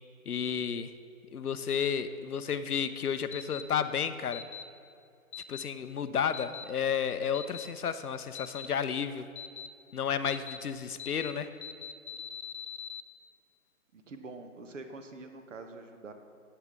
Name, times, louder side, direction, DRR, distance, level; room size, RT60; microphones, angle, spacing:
voice 1, 0.3-0.9 1.3-4.4 5.5-9.3 9.9-11.5, left 7 dB, 90° left, 11 dB, 0.8 m, -32 dB
sound 1, 3.3-3.6 4.3-4.6 5.3-5.6 6.3-6.6 7.3-7.7 8.4-8.7 9.4-9.7 10.3-10.6 11.0-11.3 11.6-13.0, left 7 dB, 50° left, 0.6 m, -41 dB
voice 2, 13.9-16.1, right 3 dB, 55° right, 7 dB, 1.1 m, -45 dB
15.5 x 8.6 x 3.7 m, 2.4 s
hypercardioid pair, 160°, 43 cm